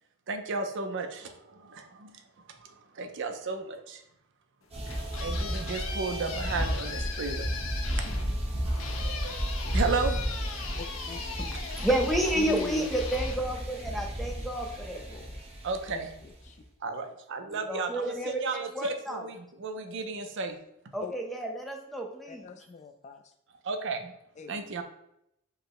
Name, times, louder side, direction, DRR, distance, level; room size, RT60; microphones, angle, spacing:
voice 1, 0.3-4.0 5.1-7.5 7.9-10.2 11.5-11.6 15.6-16.1 16.8-20.6 20.8-20.9 23.5-24.1 24.5-24.8, right 4 dB, 60° right, 6 dB, 0.5 m, -34 dB
sound 1, 4.6-14.3, left 5 dB, 70° left, 0.6 m, -40 dB
sound 2, 4.7-16.5, equal, 30° right, 0.9 m, -33 dB
voice 2, 10.8-11.2 12.4-12.9 14.9-15.3 15.9-16.0 16.5-16.6 21.0-21.1 22.3-23.2 24.4-24.7, left 5 dB, 35° left, 7 dB, 0.3 m, -41 dB
voice 3, 11.8-15.0 17.7-19.2 20.9-22.5, right 1 dB, ahead, 1 dB, 0.6 m, -30 dB
4.7 x 2.1 x 4.7 m, 0.78 s
head